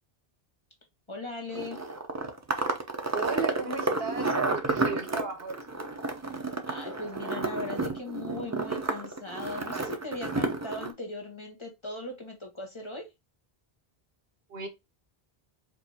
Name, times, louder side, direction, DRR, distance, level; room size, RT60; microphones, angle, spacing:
voice 1, 1.1-1.8 6.6-13.1, left 2 dB, 30° left, 1.0 m, -39 dB
sound 1, 1.5-10.9, right 3 dB, 25° right, 0.4 m, -31 dB
voice 2, 3.1-5.6 14.5-14.7, right 4 dB, 75° right, 1.3 m, -35 dB
4.6 x 2.5 x 2.7 m
omnidirectional pair, 1.0 m